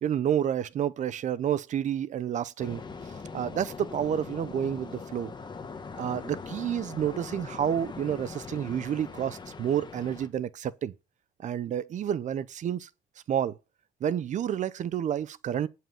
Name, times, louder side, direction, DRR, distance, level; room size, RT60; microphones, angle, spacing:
voice 1, 0.0-2.8 3.3-5.3 6.0-10.9 11.4-12.9 13.3-13.6 14.0-15.7, right 9 dB, 45° right, 0.6 m, -29 dB
sound 1, 2.6-10.3, left 4 dB, 25° left, 1.5 m, -41 dB
8.9 x 5.6 x 5.7 m
cardioid pair, 110°, 17 cm